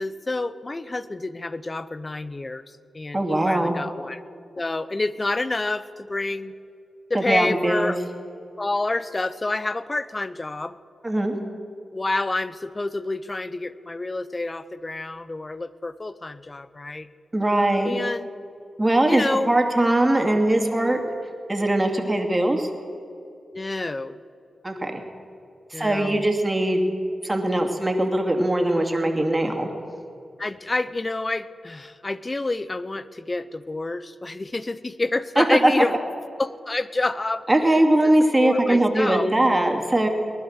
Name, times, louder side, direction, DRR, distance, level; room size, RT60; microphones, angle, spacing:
voice 1, 0.0-2.6 2.9-4.2 4.6-6.5 7.1-8.0 8.6-10.8 11.9-17.1 17.8-18.3 19.1-19.5 23.5-24.2 25.7-26.3 30.4-35.9 36.4-37.7 38.0-38.1 38.4-39.3, left 2 dB, 35° left, 16 dB, 0.7 m, -28 dB
voice 2, 3.1-3.7 7.1-7.9 11.0-11.4 17.3-18.0 18.8-21.0 21.5-22.7 24.6-25.0 25.7-26.9 27.2-29.7 35.4-35.7 37.5-40.1, right 1 dB, 20° right, 3 dB, 2.5 m, -21 dB
19.5 x 11.0 x 6.6 m, 2.5 s
cardioid pair, 50°, 0 cm